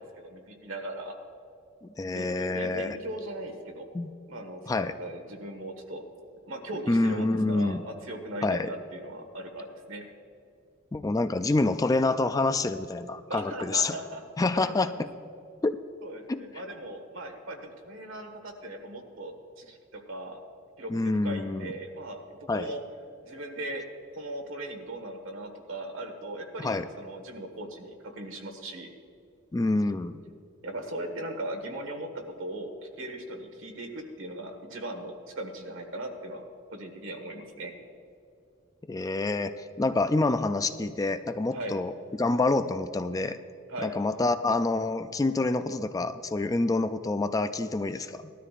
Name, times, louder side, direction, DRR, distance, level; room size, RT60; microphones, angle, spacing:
voice 1, 0.2-1.1 2.1-3.9 4.3-6.0 6.4-10.0 13.3-14.2 14.7-15.0 16.0-20.4 20.8-20.9 21.2-22.8 23.2-23.8 24.1-28.9 30.6-36.4 36.7-37.7 41.5-41.8 43.7-43.9, right 1 dB, 75° right, 4 dB, 1.6 m, -38 dB
voice 2, 1.8-3.0 3.9-4.1 4.7-4.9 6.9-7.8 8.4-8.7 10.9-14.0 14.4-15.1 15.6-15.8 16.3-16.4 20.9-21.7 22.5-22.7 26.6-26.9 29.5-30.2 38.9-41.9 42.2-43.4 43.8-48.3, left 2 dB, 15° left, 10 dB, 0.3 m, -27 dB
19.0 x 12.5 x 2.5 m, 2.6 s
head